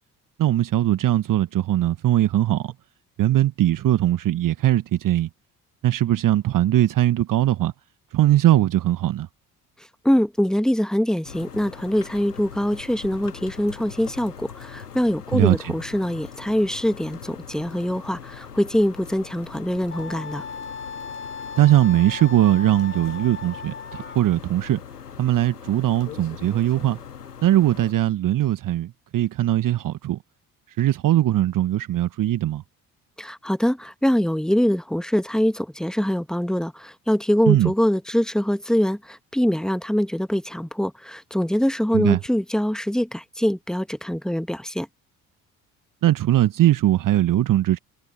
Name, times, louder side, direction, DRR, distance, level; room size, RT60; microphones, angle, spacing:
voice 1, 0.4-2.7 3.2-5.3 5.8-7.7 8.1-9.3 15.3-15.7 21.6-24.8 25.2-27.0 27.4-30.2 30.7-32.6 37.5-37.7 41.9-42.2 46.0-47.8, right 13 dB, 45° right, 1.4 m, -20 dB
voice 2, 10.0-20.5 33.2-44.9, equal, ahead, 1.9 m, -23 dB
sound 1, 11.2-27.9, left 7 dB, 85° left, 1.9 m, -41 dB
Wind instrument woodwind instrument, 19.9-24.2, left 5 dB, 25° left, 6.0 m, -36 dB
figure-of-eight pair, 50°, 46 cm